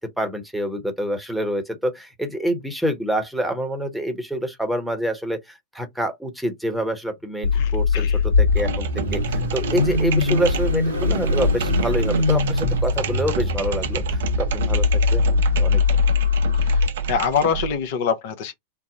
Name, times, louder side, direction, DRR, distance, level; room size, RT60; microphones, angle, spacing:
voice 1, 0.0-14.0 14.4-15.3 15.6-16.0, equal, ahead, 0.9 m, -27 dB
Car / Idling / Accelerating revving vroom, 7.4-16.9, left 4 dB, 75° right, 1.1 m, -21 dB
voice 2, 7.5-8.2 16.6-16.8 17.1-18.5, left 7 dB, 50° left, 0.6 m, -24 dB
sound 1, 8.5-17.8, right 8 dB, 60° right, 0.6 m, -29 dB
3.5 x 2.0 x 3.8 m
figure-of-eight pair, 90°, 0 cm